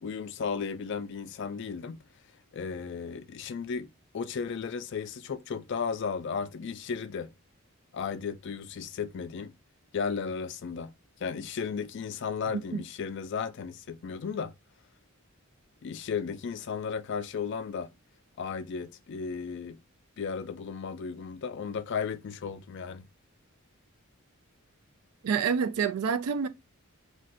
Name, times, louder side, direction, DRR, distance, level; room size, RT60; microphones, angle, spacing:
voice 1, 0.0-2.0 2.5-7.3 7.9-9.5 9.9-10.9 11.2-14.5 15.8-17.9 18.4-19.8 20.2-23.1, left 6 dB, 55° left, 0.3 m, -34 dB
voice 2, 25.2-26.5, right 6 dB, 85° right, 0.4 m, -27 dB
2.5 x 2.2 x 3.8 m
head